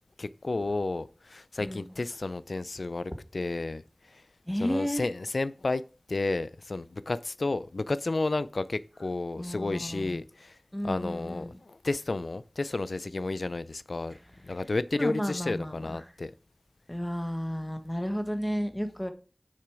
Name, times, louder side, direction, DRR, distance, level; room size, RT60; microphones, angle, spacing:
voice 1, 0.2-3.8 4.6-5.8 6.1-10.5 10.8-14.1 14.4-16.3, left 2 dB, 85° left, 0.5 m, -32 dB
voice 2, 1.6-1.9 4.5-5.0 9.4-10.2 10.7-11.6 14.1-14.2 14.5-14.6 14.9-16.1 16.9-19.1, equal, 10° left, 1.2 m, -33 dB
6.9 x 6.4 x 4.8 m
wide cardioid pair, 50°, 0 cm